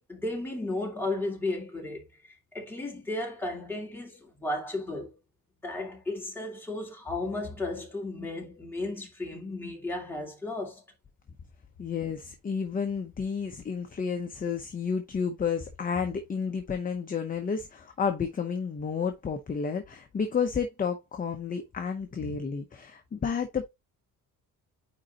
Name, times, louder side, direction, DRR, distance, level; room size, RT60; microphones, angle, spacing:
voice 1, 0.1-5.1 5.6-10.8 22.2-22.4, left 2 dB, 5° left, 2.3 m, -34 dB
voice 2, 11.8-23.7, left 6 dB, 25° left, 0.7 m, -31 dB
9.3 x 3.8 x 2.9 m
cardioid pair, 170°, 36 cm